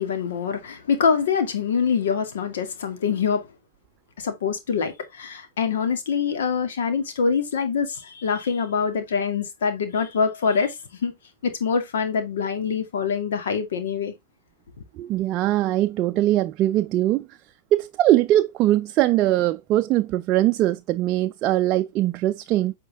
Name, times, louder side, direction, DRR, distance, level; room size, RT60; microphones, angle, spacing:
voice 1, 0.0-3.5 4.2-11.1 11.4-14.1, left 6 dB, 75° left, 2.1 m, -25 dB
voice 2, 15.0-17.3 17.7-22.7, right 14 dB, 40° right, 0.4 m, -21 dB
8.3 x 4.4 x 3.5 m
hypercardioid pair, 120°, 0 cm